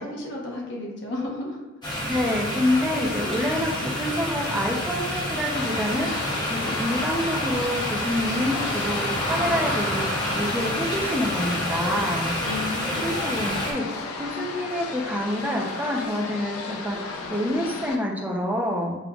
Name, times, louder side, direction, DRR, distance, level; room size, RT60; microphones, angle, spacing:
voice 1, 0.0-1.6 12.4-13.0, left 2 dB, 55° left, -2 dB, 0.9 m, -33 dB
sound 1, 1.8-13.7, equal, 20° left, 0.8 m, -28 dB
voice 2, 2.1-12.3 13.0-13.9 14.2-19.0, left 1 dB, 10° right, -1 dB, 0.5 m, -27 dB
sound 2, 5.5-17.9, left 4 dB, 90° left, 0.5 m, -34 dB
6.8 x 2.4 x 2.3 m, 1.1 s
head